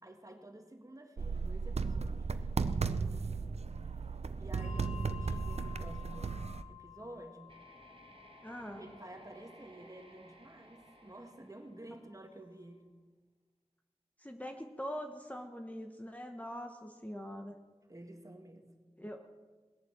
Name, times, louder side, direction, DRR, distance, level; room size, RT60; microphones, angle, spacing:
voice 1, 0.0-2.3 3.0-3.7 4.3-6.4 6.6-7.5 8.8-12.9 17.9-18.7, right 1 dB, 30° right, 4 dB, 1.8 m, -51 dB
sound 1, 1.2-6.6, right 4 dB, 70° right, 0.6 m, -35 dB
Bell, 4.6-11.4, left 10 dB, 80° left, 2.4 m, -53 dB
sound 2, 7.5-12.4, right 2 dB, 50° right, 1.6 m, -59 dB
voice 2, 8.4-8.9 14.2-17.5 19.0-19.2, equal, 15° left, 4 dB, 1.2 m, -43 dB
19.5 x 8.3 x 7.3 m, 1.4 s
wide cardioid pair, 60°, 11 cm